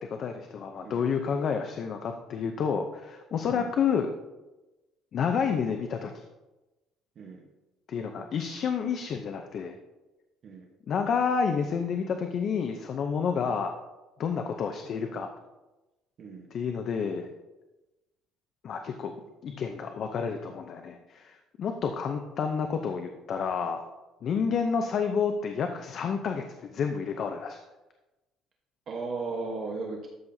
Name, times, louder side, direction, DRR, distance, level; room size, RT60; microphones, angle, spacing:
voice 1, 0.0-4.1 5.1-6.2 7.9-9.8 10.9-13.7 14.2-15.3 16.5-17.3 18.6-19.1 19.4-23.8 24.2-27.6, left 6 dB, 45° left, 5 dB, 0.6 m, -29 dB
voice 2, 28.9-30.1, right 4 dB, 40° right, 0 dB, 1.1 m, -36 dB
12.5 x 7.3 x 2.7 m, 1.1 s
cardioid pair, 155°, 0 cm